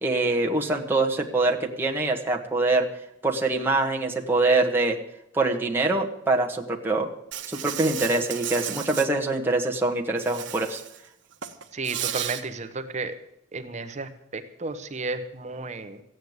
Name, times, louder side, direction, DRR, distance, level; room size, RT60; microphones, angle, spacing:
voice 1, 0.0-2.9 3.2-5.0 5.3-7.1 7.5-10.8, right 2 dB, 10° right, 0 dB, 1.4 m, -24 dB
Insect, 7.3-9.1 10.2-11.0 11.3-12.4, right 11 dB, 80° right, 1.1 m, -33 dB
voice 2, 11.7-13.2 13.5-16.0, right 3 dB, 40° right, 9 dB, 0.9 m, -33 dB
14.5 x 9.1 x 8.0 m, 0.79 s
head